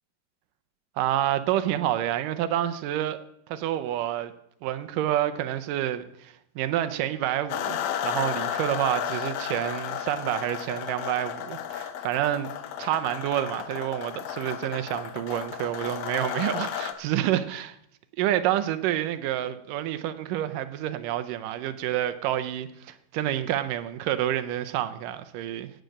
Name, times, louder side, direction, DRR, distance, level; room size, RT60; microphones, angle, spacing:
voice 1, 1.0-3.2 3.5-4.3 4.6-12.5 12.8-17.8 18.2-25.7, right 12 dB, 75° right, 2.1 m, -28 dB
sound 1, 7.5-16.9, left 9 dB, 75° left, 2.6 m, -33 dB
16.0 x 7.7 x 6.4 m
omnidirectional pair, 4.4 m